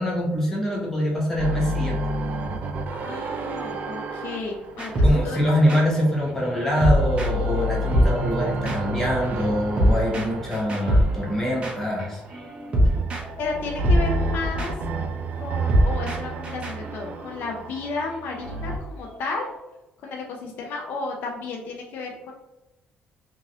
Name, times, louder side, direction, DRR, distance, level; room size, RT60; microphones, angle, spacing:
voice 1, 0.0-2.0 5.0-12.2 12.8-13.0, equal, 10° left, -4 dB, 1.0 m, -24 dB
sound 1, 1.4-6.3 6.7-12.0 12.8-18.8, right 2 dB, 50° right, 0.3 m, -30 dB
voice 2, 3.0-4.9 5.2-5.4 13.4-14.7 15.4-19.5 20.0-22.3, left 4 dB, 65° left, 0 dB, 0.4 m, -32 dB
sound 2, 4.8-7.6 7.9-19.5, equal, 35° right, 0.7 m, -25 dB
2.9 x 2.6 x 2.6 m, 0.98 s
cardioid pair, 140°, 4 cm